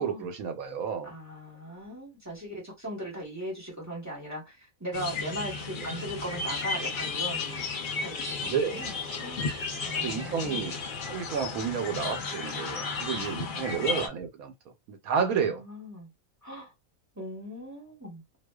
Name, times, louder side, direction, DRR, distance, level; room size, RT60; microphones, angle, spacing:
voice 1, 0.0-1.1 8.4-8.8 9.9-10.8 11.1-14.5 14.9-15.6, right 7 dB, 80° right, 1.1 m, -31 dB
voice 2, 1.0-7.7 8.0-9.5 9.8-10.7 13.2-13.9 15.2-16.1 16.4-16.7 17.1-18.2, equal, 15° right, 0.9 m, -39 dB
sound 1, 4.9-14.1, left 4 dB, 60° left, 0.5 m, -34 dB
2.4 x 2.3 x 2.2 m
omnidirectional pair, 1.5 m